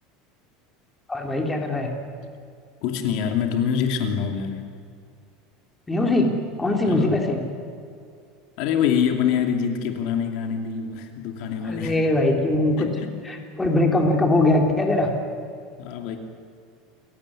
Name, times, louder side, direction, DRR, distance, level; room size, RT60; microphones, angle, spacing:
voice 1, 1.1-1.9 5.9-6.3 6.6-7.4 11.7-12.9 13.2-15.1, left 2 dB, 10° left, 2 dB, 3.3 m, -21 dB
voice 2, 2.8-4.6 6.9-7.2 8.6-12.0 12.8-13.1 15.8-16.2, left 7 dB, 55° left, 4 dB, 2.7 m, -25 dB
29.5 x 17.0 x 9.9 m, 2.4 s
supercardioid pair, 160°, 0 cm